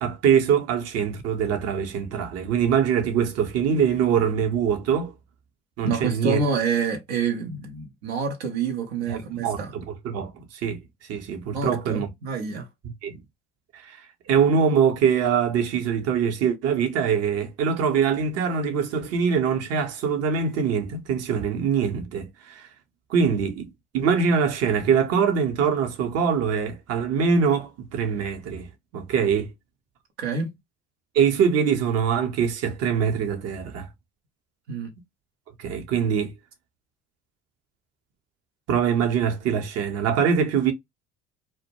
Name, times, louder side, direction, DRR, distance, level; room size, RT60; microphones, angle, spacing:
voice 1, 0.0-5.1 5.8-6.4 9.1-12.1 13.0-13.2 13.7-22.7 23.1-28.7 28.9-29.5 31.1-33.9 35.6-36.3 38.7-40.7, right 7 dB, 55° right, 0.8 m, -23 dB
voice 2, 5.8-9.7 11.5-12.7 30.2-30.6 34.7-34.9, right 5 dB, 85° right, 0.7 m, -27 dB
2.2 x 2.1 x 2.9 m
hypercardioid pair, 70°, 31 cm